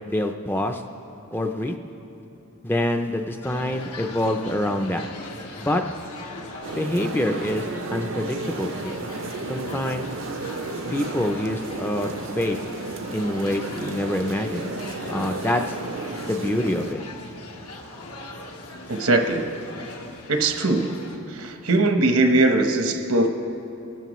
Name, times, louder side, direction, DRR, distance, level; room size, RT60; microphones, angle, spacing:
voice 1, 0.1-0.8 1.3-1.7 2.6-5.1 5.6-5.8 6.8-9.0 9.4-10.1 10.9-12.6 13.1-14.7 15.1-15.8 16.3-17.0, left 1 dB, 10° left, 4 dB, 0.4 m, -26 dB
sound 1, 3.4-21.2, left 2 dB, 85° left, 1.4 m, -40 dB
sound 2, 6.6-16.9, right 3 dB, 60° right, 0.5 m, -33 dB
voice 2, 18.9-19.5 20.3-21.0 21.3-23.3, right 2 dB, 75° right, 5 dB, 1.0 m, -20 dB
22.5 x 12.5 x 3.1 m, 2.8 s
head